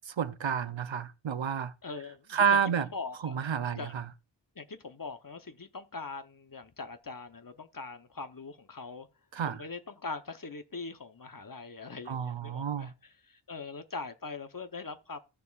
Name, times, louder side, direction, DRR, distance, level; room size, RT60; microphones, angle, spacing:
voice 1, 0.1-1.7 2.3-2.9 3.2-4.0 9.3-9.6 12.1-12.9, right 7 dB, 75° right, 0.7 m, -30 dB
voice 2, 1.8-3.4 3.7-3.9 4.6-9.1 9.4-15.2, left 4 dB, 45° left, 0.9 m, -42 dB
15.5 x 6.8 x 2.4 m
wide cardioid pair, 40°, 46 cm